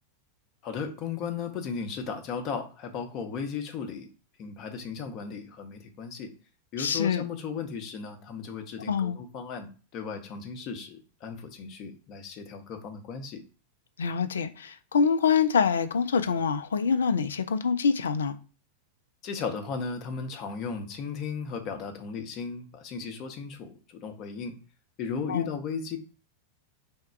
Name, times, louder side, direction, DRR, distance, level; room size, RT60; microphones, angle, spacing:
voice 1, 0.6-4.1 4.4-6.3 6.7-13.4 19.2-24.5 25.0-26.0, left 5 dB, 35° left, 0.7 m, -36 dB
voice 2, 6.8-7.2 8.9-9.2 14.0-18.3 25.3-25.5, left 6 dB, 65° left, 0.3 m, -25 dB
3.5 x 2.2 x 4.3 m
figure-of-eight pair, 90°, 0 cm